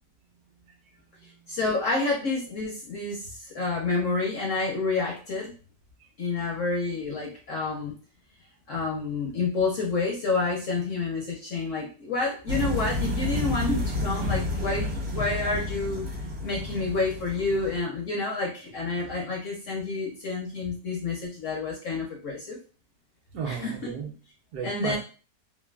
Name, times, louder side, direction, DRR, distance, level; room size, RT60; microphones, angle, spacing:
voice 1, 0.6-1.5 6.0-6.1 23.3-24.1 24.5-25.0, right 6 dB, 70° right, 1 dB, 1.1 m, -36 dB
voice 2, 1.5-5.5 6.2-7.9 8.7-16.1 16.4-22.6 23.5-23.7 24.6-25.0, left 3 dB, 65° left, -2 dB, 0.8 m, -29 dB
sound 1, 12.5-17.8, left 2 dB, 55° right, 0.7 m, -30 dB
3.2 x 2.2 x 2.2 m, 0.36 s
omnidirectional pair, 1.8 m